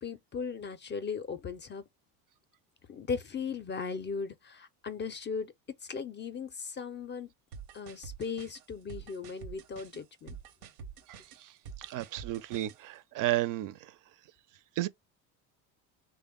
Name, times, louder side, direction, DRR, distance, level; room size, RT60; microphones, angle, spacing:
voice 1, 0.0-1.8 2.9-5.5 5.8-7.3 7.7-10.4, left 5 dB, 25° left, 0.4 m, -37 dB
sound 1, 7.5-12.8, right 6 dB, 90° right, 0.9 m, -47 dB
voice 2, 11.1-11.5 11.8-13.9 14.8-14.9, right 16 dB, 50° right, 0.5 m, -33 dB
3.3 x 2.2 x 3.6 m
supercardioid pair, 85°, 44 cm